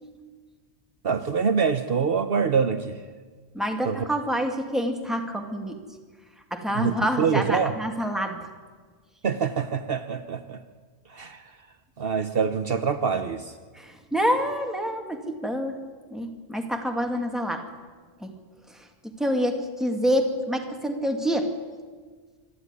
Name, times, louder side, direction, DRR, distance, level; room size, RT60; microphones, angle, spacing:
voice 1, 1.0-3.0 3.8-4.1 6.7-7.7 9.2-10.6 11.1-11.4 12.0-13.5, right 6 dB, 60° right, 9 dB, 1.0 m, -25 dB
voice 2, 3.5-5.8 6.5-8.4 13.7-15.8 16.1-17.7 18.2-18.3 18.7-21.5, equal, ahead, 4 dB, 2.1 m, -27 dB
26.0 x 11.5 x 9.8 m, 1.5 s
omnidirectional pair, 1.1 m